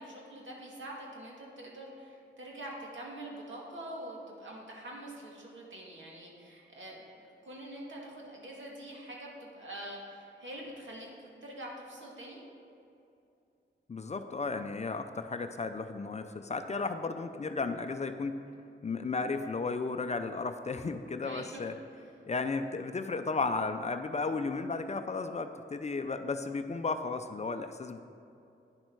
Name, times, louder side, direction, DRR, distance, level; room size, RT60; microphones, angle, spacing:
voice 1, 0.0-7.2 7.5-11.1 11.4-12.4 21.2-21.6, right 1 dB, 70° right, -3 dB, 2.1 m, -45 dB
voice 2, 13.9-18.4 18.8-21.8 22.3-28.0, left 4 dB, 35° left, 8 dB, 0.5 m, -34 dB
9.5 x 6.6 x 4.6 m, 2.6 s
wide cardioid pair, 85°, 20 cm